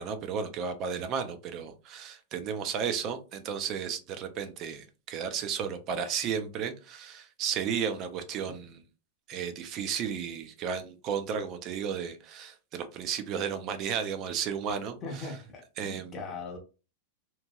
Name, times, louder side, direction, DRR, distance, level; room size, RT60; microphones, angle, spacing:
voice 1, 0.0-8.8 9.3-15.3 15.8-16.2, right 7 dB, 25° right, 9 dB, 0.3 m, -33 dB
voice 2, 15.0-16.6, left 3 dB, 15° left, 1 dB, 0.7 m, -40 dB
2.9 x 2.6 x 2.2 m, 0.32 s
supercardioid pair, 180°, 0 cm